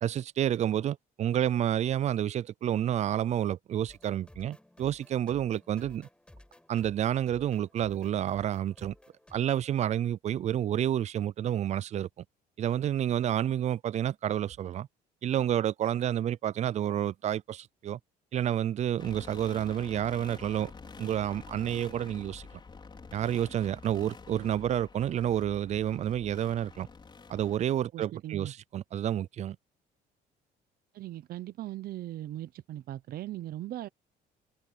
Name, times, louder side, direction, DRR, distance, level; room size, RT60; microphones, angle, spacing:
voice 1, 0.0-6.1 6.7-8.9 9.3-12.1 12.6-14.9 15.2-18.0 18.3-20.7 21.0-22.5 23.1-26.9 27.3-29.6, right 10 dB, 40° right, 0.4 m, -29 dB
sound 1, 3.9-9.4, left 1 dB, 5° left, 4.7 m, -55 dB
sound 2, 19.0-27.6, left 4 dB, 30° left, 5.3 m, -48 dB
voice 2, 27.9-28.5 30.9-33.9, right 13 dB, 60° right, 0.8 m, -39 dB
cardioid pair, 110°, 17 cm